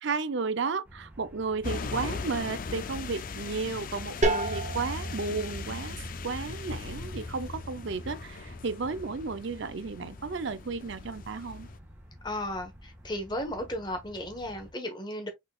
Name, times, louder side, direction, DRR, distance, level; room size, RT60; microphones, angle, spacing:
voice 1, 0.0-11.7, right 4 dB, 60° right, 0.5 m, -33 dB
sound 1, 0.8-14.7, equal, 10° right, 1.3 m, -51 dB
sound 2, 1.6-11.8, left 5 dB, 40° left, 0.4 m, -39 dB
sound 3, 4.2-9.8, right 1 dB, 35° right, 0.8 m, -35 dB
voice 2, 12.2-15.3, left 1 dB, 20° left, 1.1 m, -35 dB
5.2 x 4.0 x 2.3 m
head